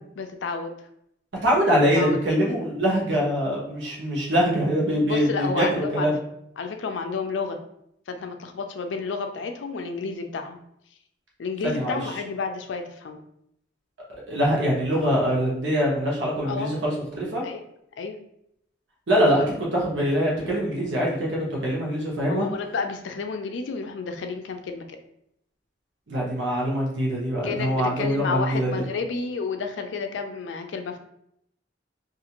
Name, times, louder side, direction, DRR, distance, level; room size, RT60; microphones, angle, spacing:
voice 1, 0.2-0.7 1.9-2.6 5.0-6.1 6.6-7.6 8.1-10.6 11.4-13.2 16.4-16.8 17.4-17.6 18.0-18.2 22.3-25.0 27.4-31.0, left 4 dB, 90° left, 6 dB, 0.4 m, -31 dB
voice 2, 1.4-6.1 11.6-12.0 14.3-17.4 19.1-22.5 26.1-28.8, equal, 90° right, -4 dB, 0.8 m, -23 dB
2.5 x 2.5 x 2.9 m, 0.75 s
head